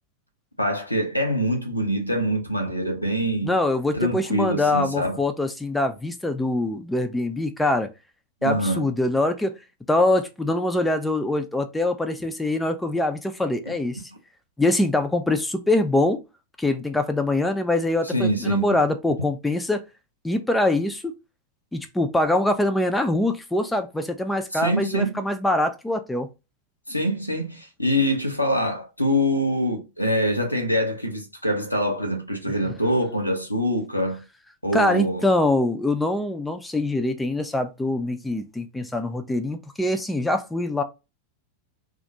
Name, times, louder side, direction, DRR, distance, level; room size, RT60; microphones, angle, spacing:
voice 1, 0.6-3.6 3.9-5.2 8.4-8.9 13.7-13.8 18.0-18.8 24.5-25.3 26.9-34.2 34.6-35.3, equal, 85° left, 0.6 m, -24 dB
voice 2, 3.4-7.9 8.4-9.5 9.9-14.0 14.6-16.2 16.6-19.8 20.2-21.1 21.7-26.3 34.7-40.8, left 2 dB, 5° left, 0.3 m, -24 dB
2.3 x 2.0 x 2.7 m
figure-of-eight pair, 90°, 0 cm